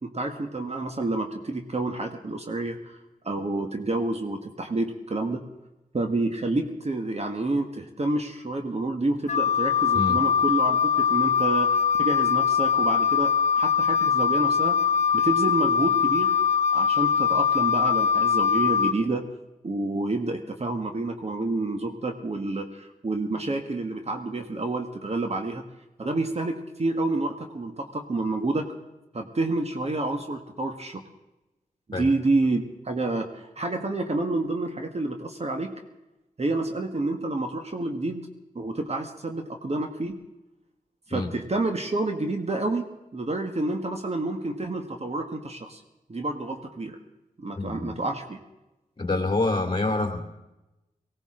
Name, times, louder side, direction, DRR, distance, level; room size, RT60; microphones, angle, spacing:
voice 1, 0.0-3.0 3.2-5.4 5.9-14.8 15.1-16.4 16.7-19.2 19.6-25.6 26.0-28.7 29.1-31.0 31.9-35.8 36.4-40.2 41.1-42.9 43.1-45.8 46.1-47.0 47.4-48.4, right 2 dB, 45° right, 5 dB, 1.5 m, -29 dB
Wind instrument woodwind instrument, 9.3-18.9, left 7 dB, 50° left, 0.5 m, -22 dB
voice 2, 47.5-47.9 49.0-50.2, left 2 dB, 30° left, 4 dB, 2.6 m, -27 dB
19.0 x 17.0 x 3.8 m, 0.98 s
cardioid pair, 50°, 15 cm